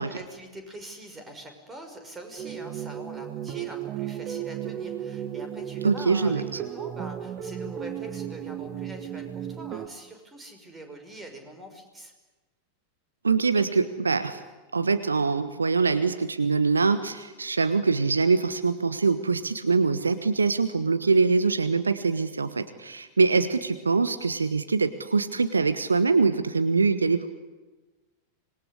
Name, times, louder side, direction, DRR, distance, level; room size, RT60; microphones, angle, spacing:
voice 1, 0.0-12.1, right 1 dB, 15° right, 6 dB, 5.9 m, -43 dB
sound 1, 2.4-9.9, right 10 dB, 35° right, 1.5 m, -35 dB
voice 2, 5.8-6.4 13.2-14.4 14.7-27.3, right 4 dB, 75° right, 11 dB, 1.3 m, -23 dB
26.0 x 21.5 x 9.9 m, 1.2 s
figure-of-eight pair, 90°, 0 cm